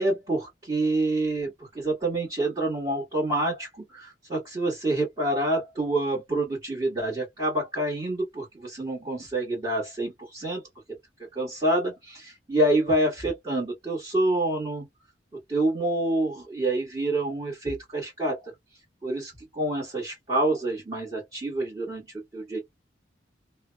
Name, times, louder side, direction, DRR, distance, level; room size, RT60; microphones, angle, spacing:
voice 1, 0.0-10.6 11.2-14.9 15.5-18.5 19.0-22.1 22.3-22.6, right 1 dB, 30° right, 1.4 m, -27 dB
2.8 x 2.1 x 2.2 m
head